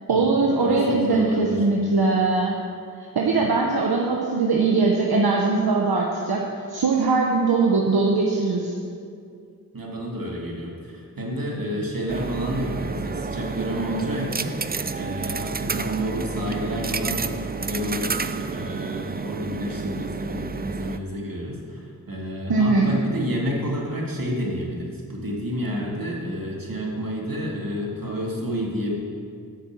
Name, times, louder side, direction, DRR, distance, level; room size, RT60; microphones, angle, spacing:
voice 1, 0.1-2.6 3.1-6.4 6.7-8.7 22.5-22.9, right 3 dB, 85° right, -1 dB, 1.0 m, -21 dB
voice 2, 0.6-1.6 3.3-3.5 9.7-28.9, equal, 65° right, -2 dB, 2.3 m, -30 dB
sound 1, 12.1-21.0, right 4 dB, 25° right, 0.4 m, -30 dB
9.8 x 6.8 x 7.4 m, 2.3 s
cardioid pair, 45°, 37 cm